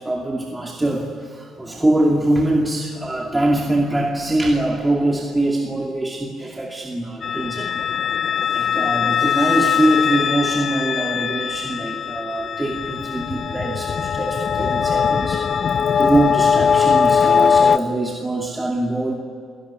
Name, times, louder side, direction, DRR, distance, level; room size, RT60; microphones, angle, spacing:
voice 1, 0.0-7.7 8.5-19.1, right 1 dB, 15° right, 0 dB, 2.5 m, -23 dB
sound 1, 7.2-17.8, left 7 dB, 45° left, 0.7 m, -20 dB
29.5 x 17.5 x 9.8 m, 2.4 s
cardioid pair, 115°, 0 cm